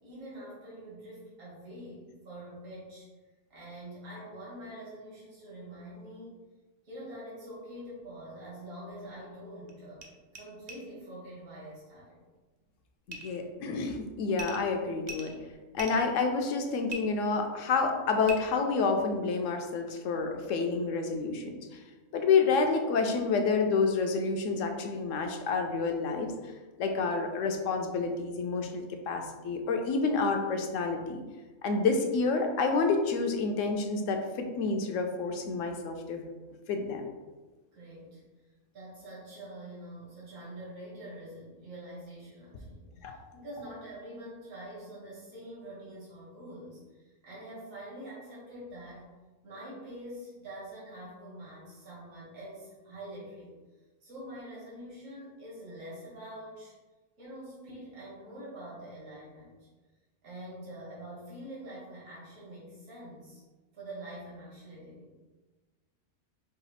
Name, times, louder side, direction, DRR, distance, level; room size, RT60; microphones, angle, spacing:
voice 1, 0.0-3.1 3.5-6.4 6.8-10.0 10.3-12.2 37.7-38.2 38.7-49.1 49.4-53.5 54.0-56.7 57.2-59.7 60.2-63.4 63.7-65.1, right 1 dB, 75° right, -7 dB, 1.9 m, -45 dB
sound 1, 8.9-9.0 9.7-9.8 10.0-10.1 10.3-10.4 10.7-10.8 13.1-13.4 14.3-14.6 15.0-16.1 16.9-17.0 18.2-18.4, right 3 dB, 50° right, 0.5 m, -40 dB
voice 2, 13.1-15.3 15.7-21.6 22.1-26.3 26.8-31.2 31.6-36.2 36.7-37.0 43.0-43.2, left 4 dB, 75° left, 4 dB, 1.0 m, -29 dB
5.0 x 2.4 x 4.1 m, 1.2 s
omnidirectional pair, 1.4 m